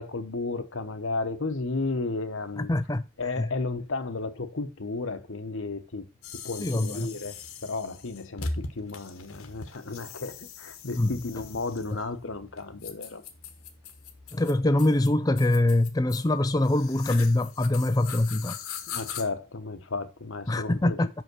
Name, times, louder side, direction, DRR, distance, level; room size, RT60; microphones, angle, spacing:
voice 1, 0.0-2.7 3.2-6.0 6.4-7.4 7.6-13.2 18.9-21.0, left 3 dB, 65° left, 1.0 m, -33 dB
voice 2, 2.6-3.0 3.4-3.5 6.6-7.1 11.0-11.2 14.3-18.6 20.5-21.1, left 1 dB, 15° left, 0.4 m, -24 dB
sound 1, 6.2-19.2, left 5 dB, 90° left, 1.3 m, -41 dB
5.7 x 5.5 x 6.1 m
head